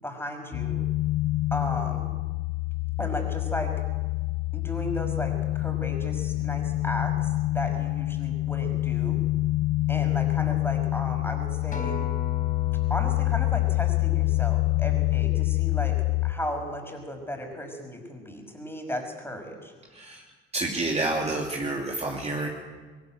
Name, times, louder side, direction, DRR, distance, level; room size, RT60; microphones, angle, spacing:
voice 1, 0.0-0.8 1.5-2.1 3.0-3.7 4.5-9.2 9.9-12.0 12.9-16.0 16.2-19.7, left 1 dB, 10° left, 4 dB, 5.7 m, -35 dB
sound 1, 0.5-16.3, left 19 dB, 45° left, 1.2 m, -26 dB
Acoustic guitar, 11.7-16.1 16.8-16.9, left 4 dB, 25° left, 4.2 m, -42 dB
voice 2, 19.9-20.2 20.5-22.5, right 2 dB, 20° right, -1 dB, 2.9 m, -29 dB
22.0 x 14.0 x 9.2 m, 1.4 s
figure-of-eight pair, 60°, 29 cm